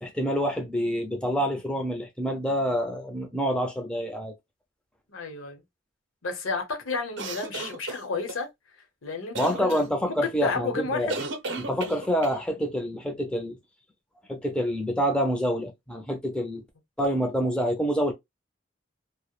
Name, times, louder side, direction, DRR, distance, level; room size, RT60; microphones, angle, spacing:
voice 1, 0.0-4.3 9.4-11.2 11.6-13.6 14.3-16.6 17.0-18.1, equal, 5° left, 0.3 m, -27 dB
voice 2, 5.1-5.6 6.2-8.5 9.0-11.2, left 4 dB, 80° left, 0.8 m, -32 dB
sound 1, 7.2-8.4 9.3-9.8 11.1-12.4, right 3 dB, 60° right, 0.5 m, -34 dB
2.2 x 2.0 x 2.9 m
head